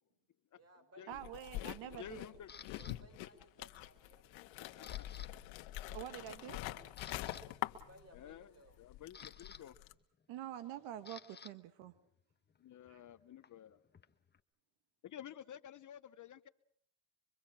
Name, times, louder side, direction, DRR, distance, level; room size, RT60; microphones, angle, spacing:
voice 1, 0.5-2.4 2.7-4.5 7.7-8.8, right 1 dB, 30° right, 7 dB, 5.9 m, -63 dB
sound 1, 1.1-8.4 8.7-9.9, left 16 dB, 75° left, 1.4 m, -45 dB
voice 2, 1.1-2.2 5.9-6.6 10.3-11.9 12.9-13.0, right 11 dB, 75° right, 13 dB, 1.4 m, -46 dB
voice 3, 2.0-2.5 4.6-5.2 6.4-7.0 8.1-8.5 8.8-9.8 12.6-13.8 15.0-16.5, left 10 dB, 40° left, 14 dB, 0.9 m, -52 dB
Camera, 2.5-3.0 3.6-3.9 4.2-5.3 5.6-5.8 6.3-6.4 6.8-7.4 8.6-11.5 11.8-14.4, left 6 dB, 20° left, 1.2 m, -56 dB
25.0 x 24.0 x 6.1 m, 0.66 s
supercardioid pair, 95°, 46 cm